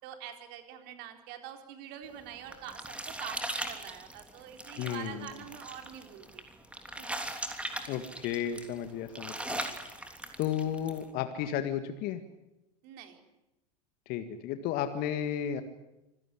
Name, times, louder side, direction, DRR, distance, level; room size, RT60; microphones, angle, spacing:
voice 1, 0.0-6.4 7.0-7.3 12.8-13.2, right 10 dB, 50° right, 6 dB, 4.3 m, -45 dB
sound 1, 2.1-11.0, right 1 dB, 5° right, 3.3 m, -40 dB
voice 2, 4.8-5.3 7.9-9.9 10.4-12.2 14.1-15.6, left 9 dB, 50° left, 9 dB, 1.9 m, -33 dB
26.5 x 16.5 x 10.0 m, 0.94 s
hypercardioid pair, 90°, 21 cm